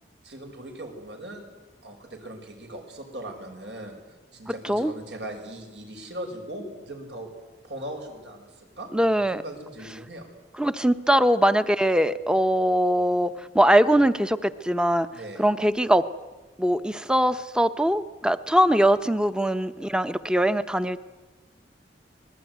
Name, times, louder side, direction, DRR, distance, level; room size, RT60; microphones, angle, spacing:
voice 1, 0.2-1.5 1.8-3.9 4.3-7.3 7.6-10.3 15.1-15.5, right 1 dB, 75° right, 3 dB, 5.8 m, -39 dB
voice 2, 8.9-9.4 10.6-15.1 15.4-16.0 16.6-21.1, equal, 5° right, 12 dB, 0.8 m, -22 dB
25.5 x 20.0 x 9.4 m, 1.2 s
head